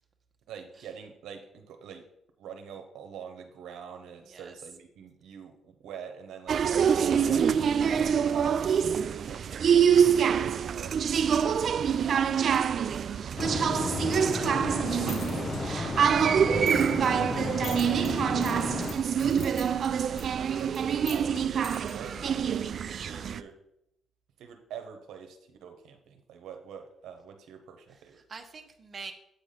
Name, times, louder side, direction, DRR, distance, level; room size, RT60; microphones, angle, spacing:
voice 1, 0.5-2.1 2.4-8.0 8.3-11.1 11.4-13.4 13.9-16.5 17.0-23.6 24.4-28.2, right 7 dB, 85° right, 5 dB, 0.9 m, -45 dB
voice 2, 4.2-4.6 27.9-29.1, right 4 dB, 35° right, 4 dB, 1.0 m, -45 dB
sound 1, 6.5-23.4, right 7 dB, 55° right, 0.3 m, -26 dB
sound 2, 13.4-18.9, left 3 dB, 40° left, 0.9 m, -33 dB
sound 3, 14.8-22.8, left 4 dB, 65° left, 1.9 m, -48 dB
8.1 x 4.1 x 5.1 m, 0.76 s
cardioid pair, 90°, 0 cm